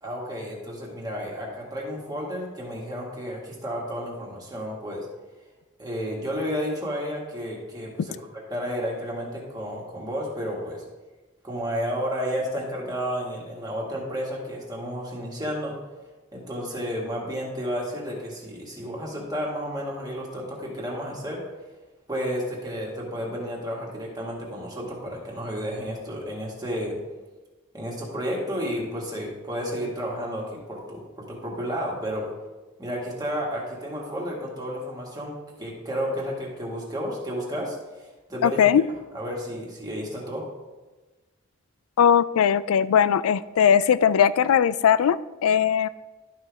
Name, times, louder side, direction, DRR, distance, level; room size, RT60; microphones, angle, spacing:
voice 1, 0.0-5.1 5.8-10.8 11.4-15.7 16.3-21.4 22.1-27.0 27.7-32.3 32.8-40.4, equal, 20° right, -3 dB, 1.8 m, -32 dB
voice 2, 38.4-38.8 42.0-45.9, left 8 dB, 85° left, 17 dB, 0.3 m, -19 dB
12.0 x 5.7 x 3.5 m, 1.2 s
head